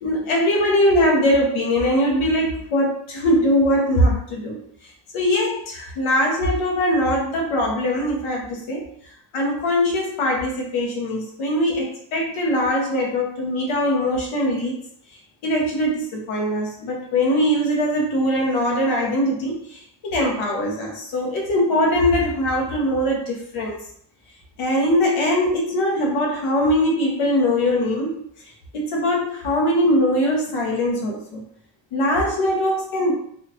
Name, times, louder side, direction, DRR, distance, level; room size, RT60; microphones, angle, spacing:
voice 1, 0.0-4.6 5.1-8.8 9.3-14.8 15.4-23.8 24.6-28.2 28.7-31.4 31.9-33.1, left 1 dB, 80° left, -1 dB, 1.3 m, -21 dB
4.1 x 2.4 x 3.0 m, 0.66 s
cardioid pair, 95°, 49 cm